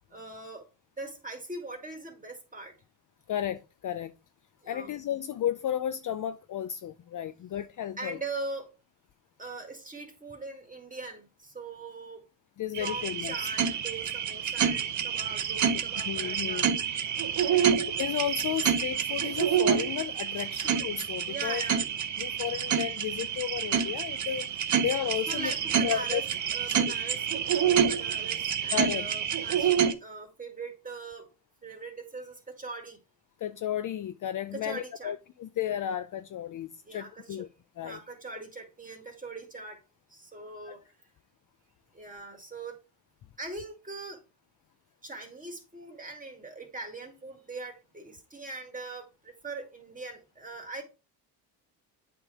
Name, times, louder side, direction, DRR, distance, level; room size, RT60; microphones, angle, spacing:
voice 1, 0.1-0.6 1.0-2.7 4.6-4.9 8.0-8.7 9.4-12.2 12.8-16.7 17.5-17.7 21.3-21.8 25.3-26.2 26.5-31.3 31.6-33.0 34.5-35.1 36.8-37.4 37.8-39.8 40.1-40.8 41.9-42.8 43.4-44.2 45.0-50.8, right 3 dB, 15° right, 2.6 m, -41 dB
voice 2, 3.3-4.1 4.7-8.2 12.6-13.5 16.1-16.8 18.0-21.6 22.2-25.5 25.8-26.2 26.6-26.9 28.7-29.1 33.4-37.5 37.8-38.0 40.7-40.8, left 10 dB, 45° left, 0.5 m, -33 dB
sound 1, 12.7-29.9, right 8 dB, 40° right, 0.9 m, -28 dB
8.1 x 3.7 x 4.8 m
cardioid pair, 95°, 46 cm